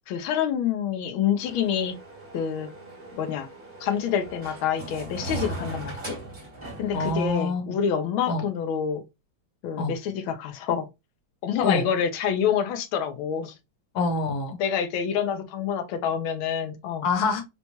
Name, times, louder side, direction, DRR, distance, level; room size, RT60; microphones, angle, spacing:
voice 1, 0.1-1.9 2.3-2.7 3.1-3.5 3.8-6.2 6.8-9.0 9.6-10.9 11.4-13.5 14.6-17.0, left 8 dB, 90° left, 1.5 m, -27 dB
sound 1, 1.4-7.3, right 2 dB, 20° right, 0.9 m, -38 dB
voice 2, 6.9-7.8 8.3-8.5 9.8-10.0 11.6-11.9 13.9-14.6 17.0-17.4, left 3 dB, 60° left, 1.3 m, -26 dB
4.1 x 2.2 x 2.9 m
omnidirectional pair, 2.2 m